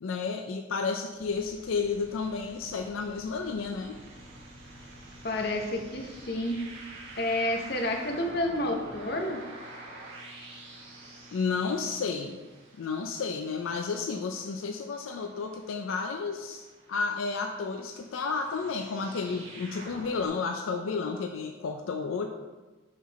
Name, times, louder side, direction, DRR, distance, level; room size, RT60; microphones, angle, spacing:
voice 1, 0.0-4.0 11.3-12.4 12.8-22.3, left 4 dB, 80° left, 4 dB, 0.4 m, -32 dB
sound 1, 1.1-20.3, right 2 dB, 75° right, 1.4 m, -48 dB
voice 2, 5.2-6.6 7.2-9.4, left 1 dB, 50° left, 2 dB, 0.8 m, -30 dB
5.8 x 4.7 x 4.1 m, 1.2 s
head